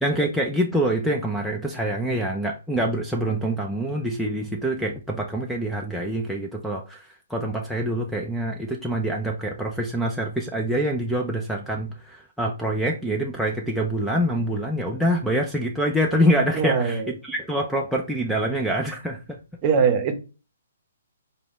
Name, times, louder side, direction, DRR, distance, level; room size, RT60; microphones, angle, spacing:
voice 1, 0.0-19.4, right 1 dB, ahead, -2 dB, 0.4 m, -25 dB
voice 2, 16.6-17.1 19.6-20.1, right 6 dB, 30° right, 7 dB, 0.7 m, -21 dB
3.9 x 2.2 x 3.6 m, 0.32 s
hypercardioid pair, 145°, 0 cm